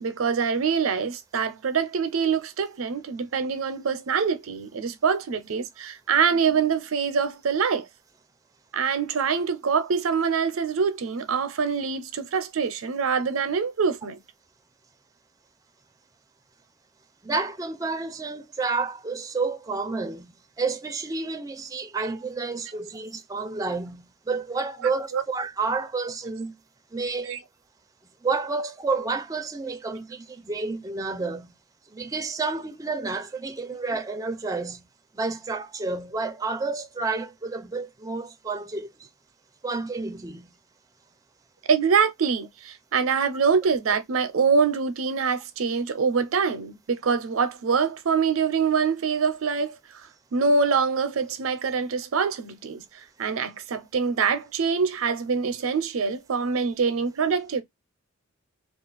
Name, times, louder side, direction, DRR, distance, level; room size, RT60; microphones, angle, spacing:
voice 1, 0.0-7.9 8.7-14.2 25.1-25.2 27.3-27.4 41.7-50.1 50.3-52.8 53.2-57.6, right 5 dB, 90° right, 0.5 m, -24 dB
voice 2, 17.2-26.5 26.9-27.3 28.2-31.5 31.9-34.8 35.1-38.9 39.6-40.5, right 4 dB, 15° right, 0.4 m, -30 dB
2.4 x 2.3 x 3.8 m
head